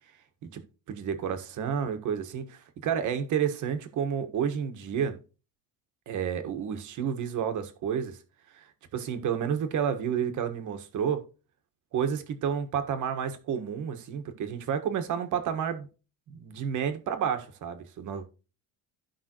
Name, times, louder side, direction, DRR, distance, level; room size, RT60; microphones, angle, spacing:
voice 1, 0.9-5.2 6.1-8.2 8.5-11.2 11.9-15.9 16.3-18.3, right 8 dB, 45° right, 1.5 m, -30 dB
14.5 x 5.5 x 3.0 m
cardioid pair, 145°, 40 cm